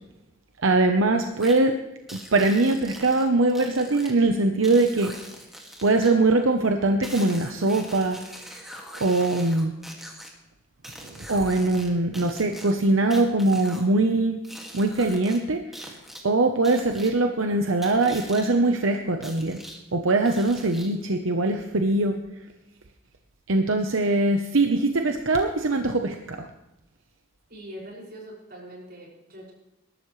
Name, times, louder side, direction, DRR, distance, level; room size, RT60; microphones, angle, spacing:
voice 1, 0.6-1.7 2.1-5.1 5.8-8.2 8.5-8.6 9.0-9.7 11.0-14.4 14.7-15.9 16.2-19.6 19.9-22.2 23.5-26.5, right 2 dB, 85° right, 5 dB, 0.9 m, -22 dB
sound 1, 1.4-1.6 2.1-4.1 4.6-6.1 7.0-10.3 10.8-11.9 12.1-13.9 14.4-15.4 15.7-16.2 16.6-17.1 17.8-18.5 19.2-19.8 20.2-21.0, equal, ahead, 2.1 m, -42 dB
voice 2, 27.5-29.5, equal, 50° right, -3 dB, 6.2 m, -42 dB
21.0 x 12.0 x 3.3 m, 0.97 s
head